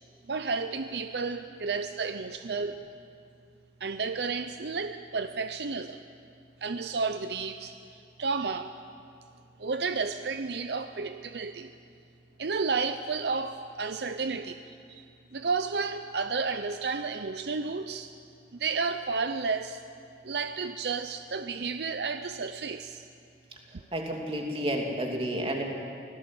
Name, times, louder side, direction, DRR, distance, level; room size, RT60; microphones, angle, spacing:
voice 1, 0.3-2.8 3.8-6.0 6.6-7.7 8.2-8.7 9.6-11.7 12.4-14.6 14.9-15.1 15.3-18.1 18.5-19.8 20.2-23.0, right 4 dB, 70° right, 9 dB, 0.6 m, -32 dB
voice 2, 23.7-25.6, right 1 dB, 30° right, 0 dB, 2.8 m, -31 dB
24.0 x 16.5 x 7.8 m, 2.4 s
head